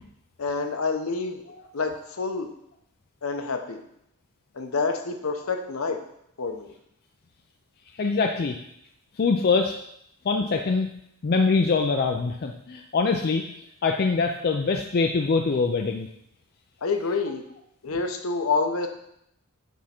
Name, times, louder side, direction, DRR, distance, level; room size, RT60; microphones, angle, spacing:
voice 1, 0.4-1.4 1.7-2.5 3.2-3.8 4.5-6.0 6.4-6.7 16.8-17.4 17.8-18.9, left 4 dB, 65° left, 6 dB, 0.8 m, -27 dB
voice 2, 8.0-8.6 9.2-9.7 10.3-10.9 11.2-13.4 13.8-16.1, left 4 dB, 45° left, 3 dB, 0.4 m, -23 dB
9.3 x 3.6 x 4.3 m, 0.76 s
head